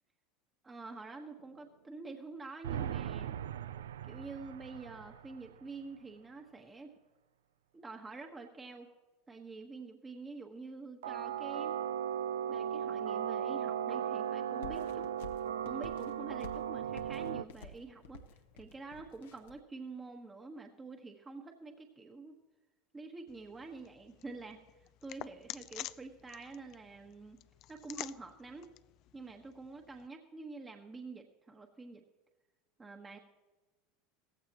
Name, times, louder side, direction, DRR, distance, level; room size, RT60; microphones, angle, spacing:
voice 1, 0.6-3.4 4.0-6.9 7.7-8.9 9.3-11.8 12.5-15.1 15.6-22.3 22.9-27.4 27.7-28.7 29.1-32.0 32.8-33.2, right 3 dB, 20° right, 3 dB, 1.3 m, -47 dB
sound 1, 2.6-5.6 11.0-17.4, right 9 dB, 85° right, 0.4 m, -37 dB
sound 2, 14.6-19.6, left 3 dB, 80° left, 1.0 m, -51 dB
sound 3, 23.3-30.1, left 15 dB, 55° left, 0.4 m, -49 dB
16.5 x 15.0 x 3.0 m, 1.2 s
hypercardioid pair, 90°, 0 cm